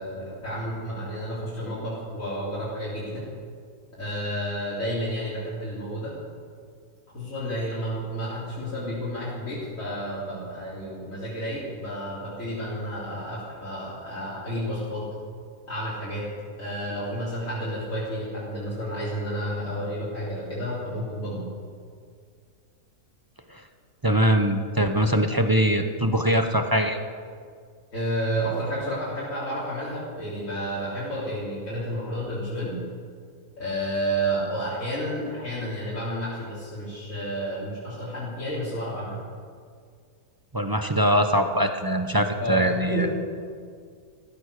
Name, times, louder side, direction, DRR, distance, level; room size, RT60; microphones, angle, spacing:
voice 1, 0.0-3.2 3.9-6.2 7.1-15.1 15.7-16.3 16.6-21.5 27.9-32.8 33.6-39.2 42.4-43.1, equal, 55° left, -9 dB, 3.9 m, -31 dB
voice 2, 24.0-27.0 40.5-43.1, equal, 20° right, 6 dB, 0.6 m, -22 dB
14.5 x 14.5 x 6.6 m, 2.1 s
omnidirectional pair, 1.6 m